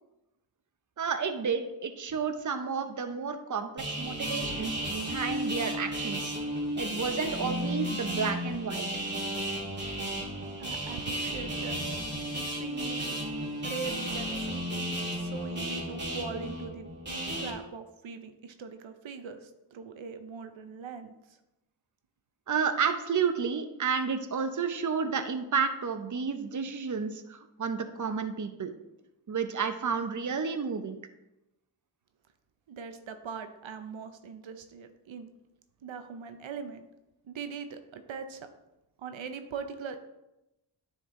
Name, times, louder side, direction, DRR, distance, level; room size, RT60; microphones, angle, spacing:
voice 1, 1.0-6.3 6.8-8.9 22.5-28.7 29.3-31.0, right 6 dB, 40° right, 8 dB, 0.8 m, -31 dB
sound 1, 3.8-17.5, equal, 25° right, 2.6 m, -34 dB
voice 2, 4.3-4.8 6.6-6.7 10.6-11.8 12.3-13.2 13.6-16.9 17.4-21.4 32.7-35.3 35.8-36.9 37.3-38.5 39.0-40.0, right 5 dB, 85° right, 7 dB, 0.8 m, -41 dB
9.7 x 4.6 x 3.7 m, 0.93 s
cardioid pair, 65°, 45 cm